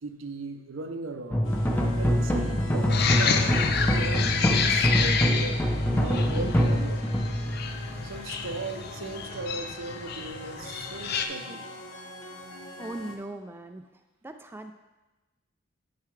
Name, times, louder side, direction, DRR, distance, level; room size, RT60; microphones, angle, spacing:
voice 1, 0.0-1.5 1.9-3.6 3.9-5.6 6.0-7.1 8.0-11.7, right 3 dB, 90° right, 6 dB, 0.7 m, -37 dB
sound 1, 1.3-8.6, equal, 10° left, 0.7 m, -25 dB
sound 2, 1.4-13.2, left 2 dB, 75° left, 0.9 m, -43 dB
sound 3, 2.9-11.3, left 6 dB, 55° left, 0.5 m, -29 dB
voice 2, 12.8-13.8 14.2-14.7, right 2 dB, 10° right, 6 dB, 0.3 m, -39 dB
10.5 x 4.8 x 3.3 m, 1.1 s
head